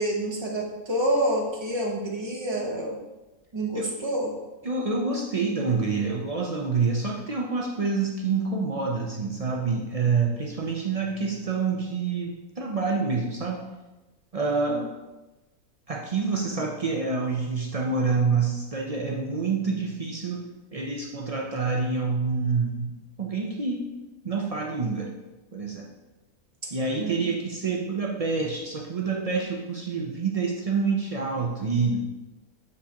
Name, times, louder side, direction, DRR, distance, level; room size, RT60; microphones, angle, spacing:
voice 1, 0.0-3.0 3.5-4.3 27.0-27.2, right 1 dB, 20° right, -1 dB, 0.9 m, -27 dB
voice 2, 4.6-13.6 14.3-14.9 15.9-20.4 20.7-23.8 24.2-25.1 25.5-25.9 26.7-32.0, right 4 dB, 65° right, -1 dB, 0.3 m, -27 dB
8.4 x 4.8 x 2.9 m, 1.1 s
omnidirectional pair, 1.6 m